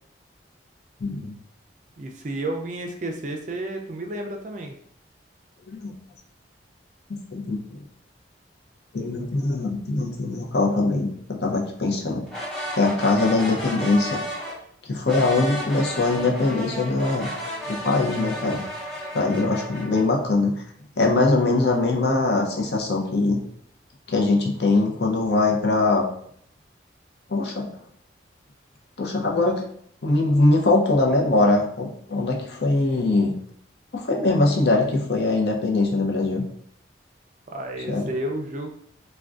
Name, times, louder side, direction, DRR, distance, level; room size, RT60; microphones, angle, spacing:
voice 1, 1.0-1.3 5.7-5.9 7.1-7.6 8.9-12.3 12.7-14.2 14.9-17.3 17.7-18.6 19.1-20.5 21.0-23.4 24.1-26.1 27.3-27.7 29.0-29.6 30.0-33.4 33.9-36.4 37.9-38.1, left 2 dB, 60° left, 0 dB, 0.6 m, -22 dB
voice 2, 2.0-4.7 37.5-38.7, right 1 dB, 40° right, 3 dB, 0.4 m, -31 dB
sound 1, 12.3-14.6 15.1-20.0, equal, 5° left, 0.7 m, -33 dB
3.5 x 2.2 x 2.4 m, 0.67 s
head